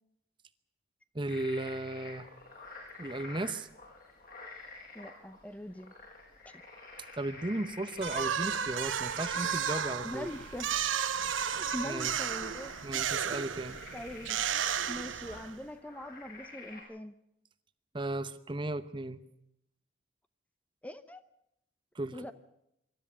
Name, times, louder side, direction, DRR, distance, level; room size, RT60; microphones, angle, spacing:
voice 1, 1.1-2.3 3.0-3.7 7.2-10.3 11.8-12.1 12.8-13.8 17.9-19.2 21.9-22.3, right 2 dB, 25° right, 12 dB, 0.8 m, -35 dB
sound 1, 1.3-16.8, left 3 dB, 50° left, 6.6 m, -50 dB
voice 2, 4.9-5.9 6.4-6.6 10.0-10.7 11.4-13.1 13.9-14.6 14.9-17.2 20.8-21.2 22.1-22.3, left 1 dB, 10° left, 10 dB, 0.7 m, -42 dB
sound 2, 8.0-15.6, right 8 dB, 90° right, 0.9 m, -33 dB
25.0 x 13.0 x 8.6 m, 0.80 s
head